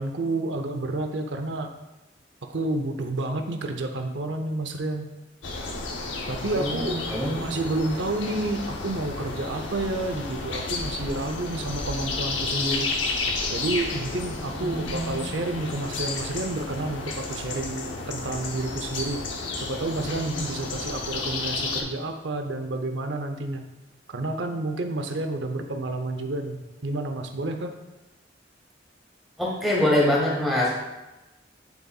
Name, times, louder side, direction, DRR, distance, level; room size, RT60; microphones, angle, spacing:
voice 1, 0.0-1.7 2.5-5.1 6.3-7.0 7.4-12.9 13.5-19.2 19.6-23.6 24.1-27.7, right 2 dB, 75° right, 5 dB, 0.7 m, -30 dB
sound 1, 5.4-21.8, left 3 dB, 90° left, 0.8 m, -32 dB
voice 2, 6.5-7.5 14.6-15.3 29.4-30.8, left 1 dB, ahead, -5 dB, 1.2 m, -25 dB
10.5 x 4.0 x 2.3 m, 1.0 s
head